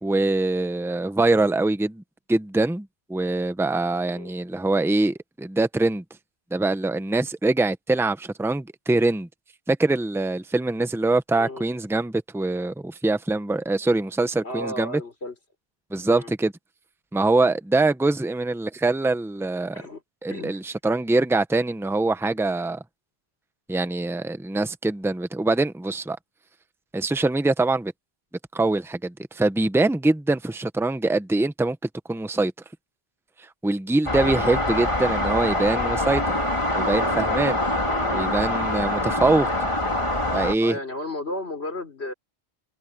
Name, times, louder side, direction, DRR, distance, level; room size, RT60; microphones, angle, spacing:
voice 1, 0.0-2.0 2.3-6.0 6.5-9.3 9.7-15.0 15.9-16.5 17.1-19.8 20.2-22.8 23.7-26.2 26.9-27.9 28.5-31.8 32.1-32.5 33.4-36.4 36.8-37.6 38.1-39.7 40.3-40.8, right 2 dB, 5° right, 0.9 m, -23 dB
voice 2, 14.4-15.3 16.1-16.3 19.7-20.0 20.3-20.6 37.8-38.4 40.6-42.1, left 1 dB, 85° left, 4.6 m, -34 dB
sound 1, 34.1-40.6, left 1 dB, 30° left, 2.8 m, -24 dB
omnidirectional pair, 1.1 m